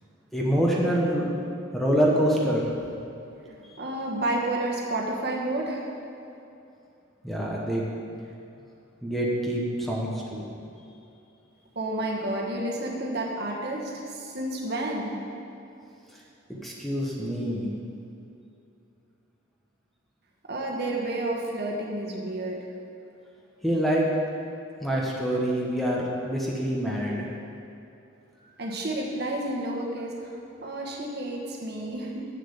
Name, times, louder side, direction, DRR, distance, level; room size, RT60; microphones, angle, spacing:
voice 1, 0.3-1.3 1.7-2.7 7.2-7.8 9.0-10.5 16.6-17.7 23.6-24.1 24.8-27.2, equal, ahead, -4 dB, 1.0 m, -26 dB
voice 2, 3.5-5.9 11.7-15.1 20.5-22.6 28.6-32.2, right 1 dB, 55° right, -1 dB, 1.3 m, -30 dB
7.5 x 7.0 x 7.1 m, 2.7 s
head